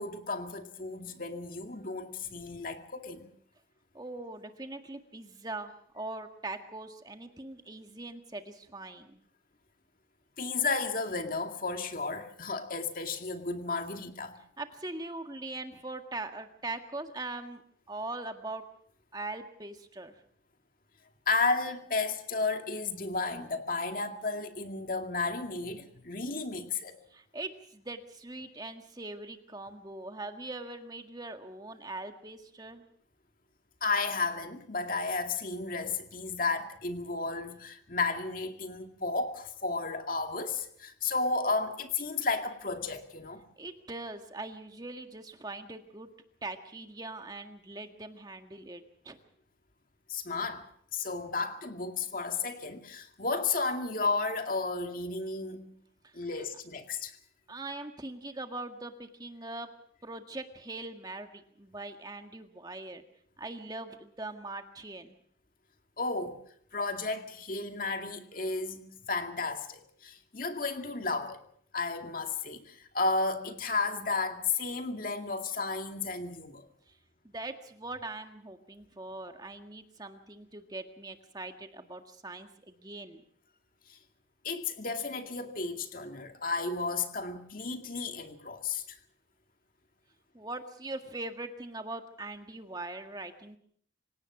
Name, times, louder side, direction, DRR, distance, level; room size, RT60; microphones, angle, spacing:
voice 1, 0.0-3.3 10.4-14.4 21.3-27.0 33.8-43.4 50.1-50.6 50.9-55.7 56.1-57.1 66.0-66.4 66.7-71.4 71.7-76.7 83.9-84.0 84.4-89.0, left 3 dB, 45° left, 5 dB, 2.2 m, -33 dB
voice 2, 3.9-9.2 14.6-17.6 17.9-18.7 19.1-20.1 27.1-32.9 43.6-46.1 46.4-49.2 56.0-56.1 57.5-59.7 60.0-63.0 63.4-65.1 76.9-77.0 77.2-83.2 90.3-93.6, right 2 dB, 20° right, 6 dB, 1.8 m, -41 dB
26.5 x 17.5 x 6.1 m, 0.62 s
head